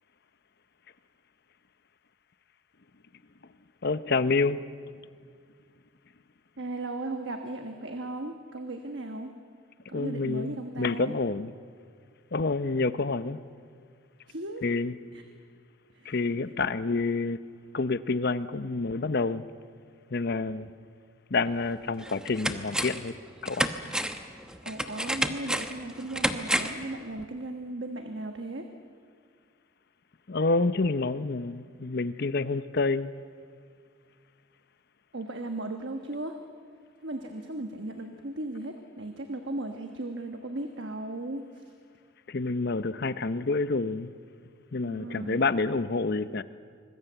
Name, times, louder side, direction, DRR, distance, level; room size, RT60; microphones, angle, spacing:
voice 1, 3.8-4.6 9.9-11.5 12.3-13.4 14.6-14.9 16.0-17.4 17.7-19.5 20.1-20.7 21.3-23.1 23.4-23.7 30.3-33.1 42.3-44.1 44.7-46.4, left 3 dB, 50° left, 13 dB, 0.7 m, -28 dB
voice 2, 6.6-9.3 9.9-11.2 14.3-14.6 15.1-15.2 15.9-16.1 24.6-28.7 35.1-36.4 37.0-41.6 44.8-45.4, right 2 dB, 60° right, 5 dB, 1.3 m, -36 dB
sound 1, 21.5-21.6 22.0-23.1 23.5-26.9 27.2-27.3, right 1 dB, 5° right, 0.9 m, -30 dB
25.5 x 20.5 x 8.0 m, 2.1 s
head